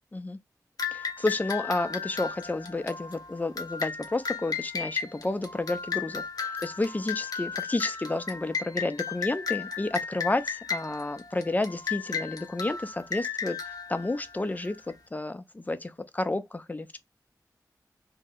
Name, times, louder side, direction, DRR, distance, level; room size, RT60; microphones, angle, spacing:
sound 1, 0.8-14.9, left 6 dB, 65° left, 0.6 m, -35 dB
voice 1, 0.9-17.0, left 2 dB, 25° left, 0.4 m, -31 dB
2.7 x 2.0 x 3.5 m
wide cardioid pair, 95°, 7 cm